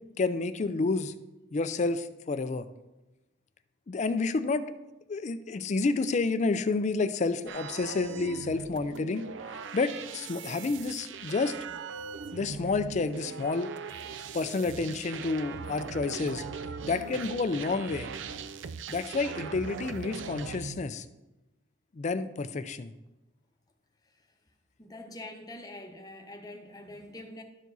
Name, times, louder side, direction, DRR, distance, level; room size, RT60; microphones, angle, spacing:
voice 1, 0.2-1.1 1.5-2.7 3.9-4.7 5.1-9.2 9.7-11.5 12.3-13.7 14.3-16.4 16.8-18.1 18.9-21.1 22.0-22.9, left 3 dB, 40° left, 12 dB, 0.4 m, -29 dB
sound 1, 7.5-20.8, right 5 dB, 70° right, 0.4 m, -40 dB
voice 2, 24.8-27.4, left 1 dB, 20° left, 4 dB, 0.9 m, -44 dB
12.5 x 4.6 x 4.0 m, 1.0 s
head